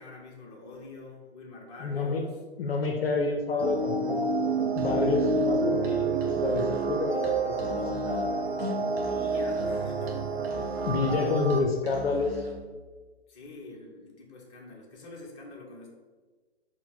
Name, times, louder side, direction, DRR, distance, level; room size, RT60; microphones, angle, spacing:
voice 1, 0.0-2.4 6.8-7.9 9.0-10.6 11.8-12.2 13.3-15.9, left 3 dB, 25° left, -1 dB, 0.7 m, -47 dB
voice 2, 1.8-2.2 2.6-4.4 4.7-8.4 10.9-12.4, left 3 dB, 65° left, 2 dB, 0.5 m, -29 dB
sound 1, 3.6-11.6, right 3 dB, 70° right, 0.6 m, -28 dB
Musical instrument, 4.7-12.7, left 1 dB, 20° right, 0.4 m, -42 dB
4.1 x 2.1 x 4.5 m, 1.4 s
figure-of-eight pair, 120°, 33 cm